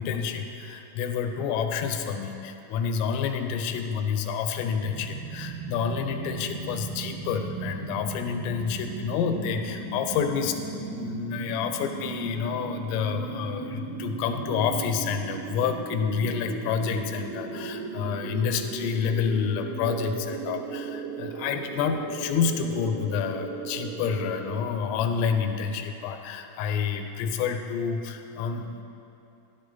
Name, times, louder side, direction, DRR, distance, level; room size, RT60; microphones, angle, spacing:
voice 1, 0.0-10.6 10.9-28.7, left 6 dB, 85° left, 6 dB, 3.4 m, -29 dB
sound 1, 4.8-24.6, right 4 dB, 80° right, 2.3 m, -36 dB
14.0 x 11.5 x 4.0 m, 2.7 s
omnidirectional pair, 5.8 m